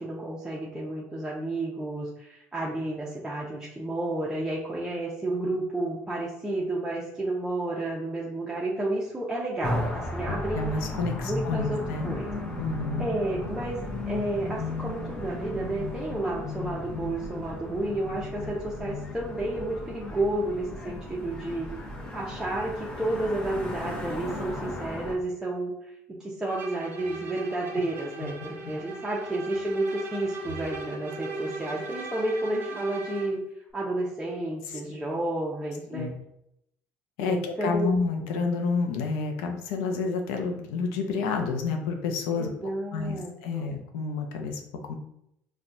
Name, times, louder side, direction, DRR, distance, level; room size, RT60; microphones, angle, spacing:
voice 1, 0.0-10.7 11.2-12.3 13.0-21.7 22.1-25.7 26.1-33.4 33.7-36.1 37.2-37.9 42.3-43.7, right 1 dB, 10° right, -5 dB, 0.7 m, -31 dB
sound 1, 9.6-25.2, left 2 dB, 20° left, 0.9 m, -35 dB
voice 2, 10.2-12.2 12.6-13.1 28.2-28.3 35.9-36.1 37.2-42.5 42.9-43.2 43.4-45.0, left 4 dB, 85° left, 4 dB, 0.5 m, -29 dB
Bowed string instrument, 26.5-33.4, right 3 dB, 35° right, 1.0 m, -38 dB
4.1 x 2.3 x 2.6 m, 0.77 s
supercardioid pair, 85°, 6 cm